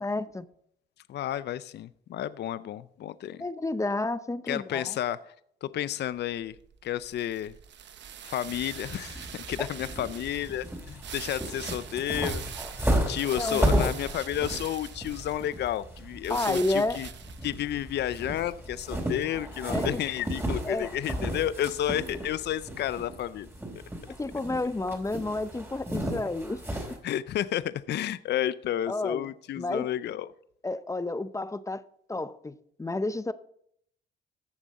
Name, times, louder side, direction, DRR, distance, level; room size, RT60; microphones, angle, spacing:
voice 1, 0.0-0.5 3.4-5.0 9.6-9.7 13.4-13.9 16.3-17.0 19.7-20.0 20.6-20.9 24.1-27.0 28.9-29.3 29.6-29.9 30.6-31.8 32.1-33.3, left 2 dB, 15° left, 0.7 m, -31 dB
voice 2, 1.1-3.4 4.5-5.3 5.6-6.6 6.8-7.5 8.2-12.4 12.9-17.1 17.4-23.5 27.0-30.3, left 11 dB, 60° left, 0.5 m, -31 dB
sound 1, 6.1-19.4, right 9 dB, 65° right, 1.1 m, -44 dB
sound 2, 8.5-27.0, right 1 dB, 10° right, 3.9 m, -34 dB
14.0 x 7.5 x 4.1 m
cardioid pair, 90°, 20 cm